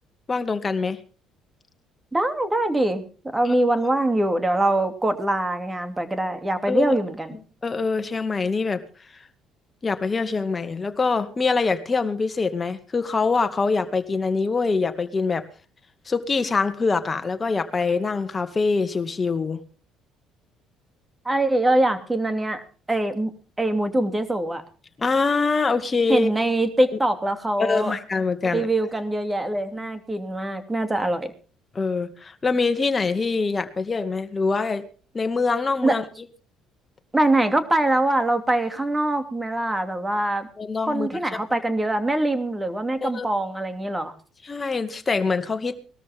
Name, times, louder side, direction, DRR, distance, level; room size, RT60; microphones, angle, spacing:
voice 1, 0.3-1.0 3.4-3.6 6.7-7.0 7.6-8.8 9.1-9.3 9.8-15.5 16.1-19.6 25.0-26.3 27.6-28.7 31.7-34.9 35.1-36.0 40.6-41.1 41.5-41.6 43.0-43.3 44.4-45.8, left 4 dB, 30° left, 8 dB, 2.1 m, -24 dB
voice 2, 2.1-3.0 3.3-7.4 21.2-22.6 22.9-23.3 23.6-24.6 26.1-27.9 28.5-31.3 35.8-36.0 37.1-40.5 40.9-44.1, right 1 dB, 15° right, 8 dB, 2.8 m, -23 dB
20.0 x 13.5 x 3.6 m, 0.39 s
hypercardioid pair, 65°, 0 cm